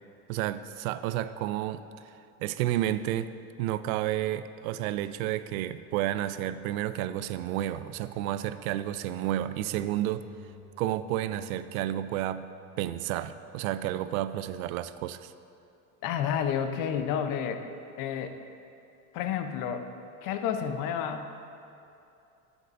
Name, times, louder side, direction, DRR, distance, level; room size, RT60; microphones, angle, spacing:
voice 1, 0.3-1.8 2.4-3.3 3.6-10.2 10.8-12.5 12.8-15.3, right 13 dB, 70° right, 13 dB, 0.5 m, -31 dB
sound 1, 7.0-14.3, equal, 25° right, 1.3 m, -53 dB
voice 2, 16.0-17.6 18.0-18.4 19.1-19.9 20.2-21.3, left 8 dB, 50° left, 7 dB, 0.7 m, -30 dB
10.5 x 8.1 x 2.6 m, 2.7 s
hypercardioid pair, 90°, 44 cm